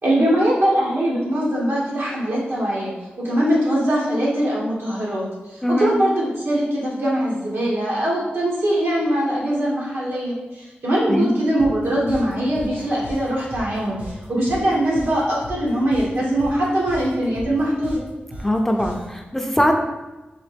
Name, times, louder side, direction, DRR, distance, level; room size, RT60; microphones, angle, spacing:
voice 1, 0.0-2.9 3.2-14.0 14.3-18.0, right 1 dB, 80° right, -5 dB, 1.3 m, -22 dB
voice 2, 5.6-5.9 11.1-11.4 18.4-19.8, equal, 10° left, 3 dB, 0.3 m, -21 dB
sound 1, 11.6-19.2, equal, 50° right, 1.2 m, -37 dB
4.1 x 2.9 x 3.3 m, 1.1 s
wide cardioid pair, 135°, 4 cm